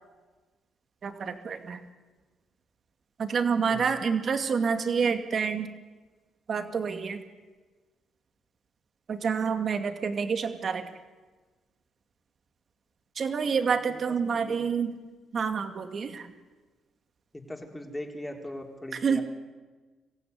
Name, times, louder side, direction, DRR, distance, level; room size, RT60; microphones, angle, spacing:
voice 1, 1.0-1.8 3.2-5.7 6.5-7.2 9.1-10.9 13.2-14.9 15.3-16.3 19.0-19.2, right 6 dB, 50° right, 7 dB, 2.3 m, -28 dB
voice 2, 13.4-13.9 14.3-14.6 17.3-19.2, left 1 dB, 10° left, 2 dB, 4.0 m, -40 dB
24.5 x 15.5 x 9.7 m, 1.3 s
cardioid pair, 90°, 0 cm